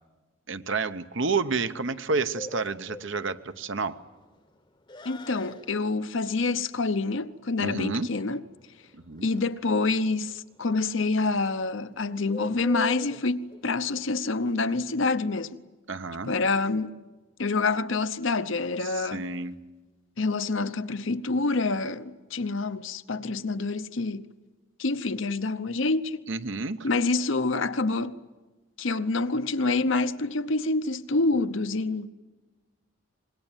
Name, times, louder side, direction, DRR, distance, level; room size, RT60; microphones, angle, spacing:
voice 1, 0.5-4.0 7.6-8.1 8.9-9.3 15.9-16.3 18.8-19.6 26.3-26.9, right 4 dB, 65° right, 0.9 m, -30 dB
Bird, 2.3-15.3, left 2 dB, 25° left, 0.9 m, -44 dB
voice 2, 5.0-8.4 9.2-15.6 16.3-17.0 17.4-19.2 20.2-24.3 24.8-26.3 26.8-28.2 28.8-32.1, left 3 dB, 70° left, 0.8 m, -27 dB
25.5 x 21.5 x 9.1 m
head